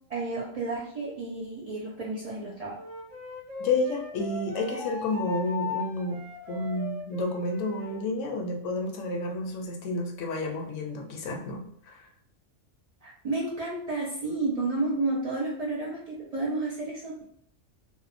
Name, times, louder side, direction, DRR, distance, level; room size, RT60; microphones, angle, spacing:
voice 1, 0.1-2.8 13.0-17.2, right 2 dB, 50° right, -6 dB, 0.4 m, -31 dB
Wind instrument woodwind instrument, 2.8-8.1, left 5 dB, 85° right, 1.2 m, -38 dB
voice 2, 3.6-6.2 6.5-12.1, left 2 dB, 90° left, 2 dB, 1.0 m, -30 dB
2.8 x 2.0 x 2.4 m, 0.67 s
omnidirectional pair, 1.2 m